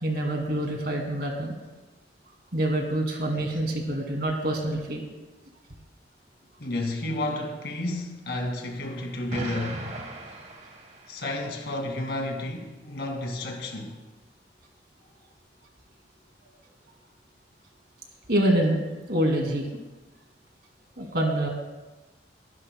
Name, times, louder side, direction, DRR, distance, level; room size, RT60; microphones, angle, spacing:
voice 1, 0.0-1.6 2.5-5.0 18.3-18.8 19.1-19.7 21.0-21.5, right 1 dB, 60° right, 2.4 m, -26 dB
voice 2, 6.6-9.9 11.1-14.0, left 1 dB, 75° left, 2.2 m, -31 dB
Explosion, 9.3-11.5, right 2 dB, 40° right, 1.5 m, -38 dB
22.5 x 11.0 x 2.2 m
head